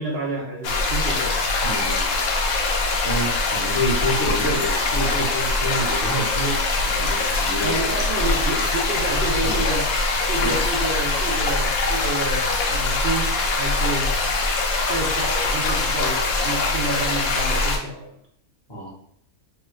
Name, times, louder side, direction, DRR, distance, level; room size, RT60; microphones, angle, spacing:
voice 1, 0.0-1.4 2.9-3.0 7.0-7.2 7.6-9.9 10.3-14.6 14.9-18.2, right 2 dB, 70° right, -1 dB, 0.6 m, -29 dB
sound 1, 0.6-17.8, left 3 dB, 70° left, 1.0 m, -23 dB
voice 2, 1.6-2.3 3.0-6.6 6.8-8.4 9.4-9.6 10.4-10.5 18.7-18.9, equal, 25° left, -4 dB, 0.5 m, -28 dB
3.3 x 2.2 x 3.1 m, 0.65 s
omnidirectional pair, 1.7 m